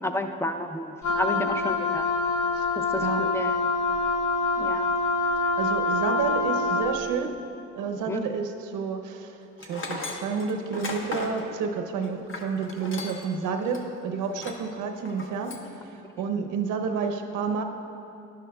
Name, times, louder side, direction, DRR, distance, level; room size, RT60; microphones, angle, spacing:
voice 1, 0.0-2.1 2.8-3.7 4.6-4.9 8.1-8.2, left 1 dB, 10° left, 6 dB, 0.5 m, -31 dB
Wind instrument woodwind instrument, 1.0-7.0, left 3 dB, 75° left, 1.0 m, -25 dB
voice 2, 3.0-3.3 5.6-7.4 7.8-15.6 16.2-17.6, right 5 dB, 90° right, 5 dB, 0.7 m, -30 dB
Tools, 9.6-13.4 13.7-13.8 14.3-14.7 15.1-15.7, left 2 dB, 45° left, 1.1 m, -36 dB
11.5 x 10.5 x 2.3 m, 2.8 s
cardioid pair, 90°, 30 cm